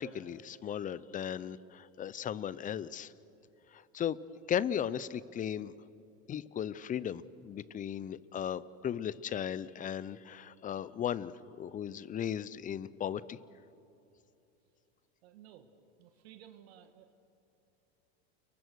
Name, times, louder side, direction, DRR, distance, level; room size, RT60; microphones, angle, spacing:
voice 1, 0.0-3.1 3.7-4.2 4.5-5.7 6.3-13.4, left 9 dB, 25° left, 18 dB, 0.7 m, -36 dB
voice 2, 15.2-17.1, right 10 dB, 75° right, 7 dB, 1.9 m, -56 dB
29.5 x 23.0 x 6.4 m, 2.8 s
supercardioid pair, 115°, 31 cm